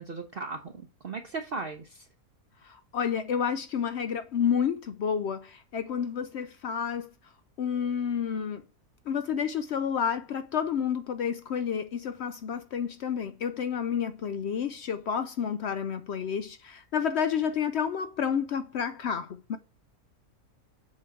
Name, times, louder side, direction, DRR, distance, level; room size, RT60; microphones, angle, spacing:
voice 1, 0.0-2.1, right 4 dB, 50° right, 0.8 m, -37 dB
voice 2, 2.6-7.1 7.6-8.6 9.1-19.6, left 7 dB, 65° left, 0.7 m, -30 dB
7.6 x 4.5 x 3.6 m
omnidirectional pair, 1.5 m